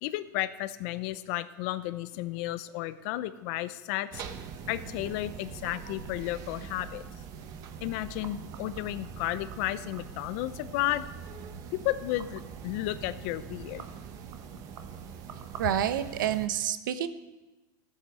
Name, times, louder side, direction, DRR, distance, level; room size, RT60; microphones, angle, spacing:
voice 1, 0.0-4.2 4.7-7.0 7.8-11.0 11.7-13.8, left 15 dB, 45° left, 15 dB, 0.6 m, -33 dB
sound 1, 4.1-16.5, right 6 dB, 35° right, 1.0 m, -43 dB
voice 2, 15.6-17.1, right 10 dB, 80° right, 12 dB, 1.0 m, -28 dB
14.0 x 8.6 x 6.2 m, 1.1 s
supercardioid pair, 155°, 11 cm